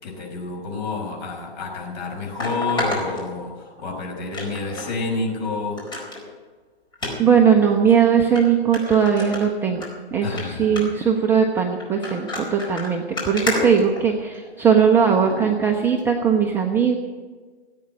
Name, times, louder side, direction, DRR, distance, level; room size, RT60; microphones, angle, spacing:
voice 1, 0.0-5.8 10.2-10.9, left 3 dB, 45° left, 0 dB, 5.7 m, -29 dB
sound 1, 1.3-1.4 2.4-3.8 4.3-4.9 5.3-5.4 5.8-6.2 6.9-7.1 7.9-8.0 8.4-8.5 8.7-9.9 10.2-10.4 10.8-11.1 11.8-14.5 15.3-15.5 16.0-16.1, left 2 dB, 15° left, 4.5 m, -30 dB
voice 2, 7.2-9.8 10.1-16.9, right 7 dB, 5° right, 1 dB, 0.6 m, -19 dB
17.0 x 8.6 x 9.4 m, 1.4 s
hypercardioid pair, 140°, 32 cm